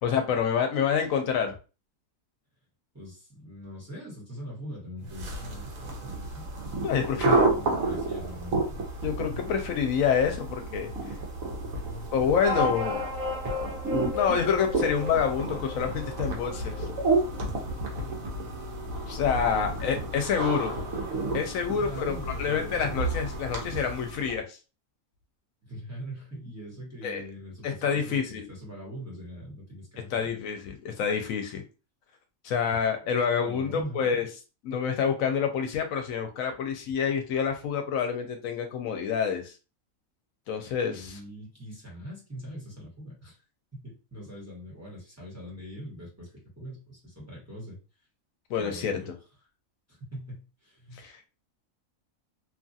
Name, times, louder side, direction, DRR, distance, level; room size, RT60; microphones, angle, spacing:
voice 1, 0.0-1.5 6.8-7.4 9.0-10.9 12.1-13.0 14.1-16.9 19.1-20.8 21.3-24.6 27.0-27.2 27.6-28.5 30.1-31.6 32.4-34.3 34.6-39.5 40.5-40.9 48.5-49.0 50.9-51.1, left 7 dB, 75° left, 5 dB, 1.0 m, -27 dB
voice 2, 2.9-6.5 7.1-8.8 9.3-9.4 11.6-12.1 19.5-19.8 21.6-22.9 25.6-30.4 33.4-34.0 40.8-43.4 43.7-47.8 48.6-49.1 49.9-51.0, equal, 10° right, -5 dB, 1.1 m, -42 dB
sound 1, 5.1-24.4, right 2 dB, 75° right, 1.2 m, -31 dB
sound 2, 12.4-17.4, left 2 dB, 50° right, 1.1 m, -34 dB
2.9 x 2.4 x 2.6 m, 0.33 s
omnidirectional pair, 1.4 m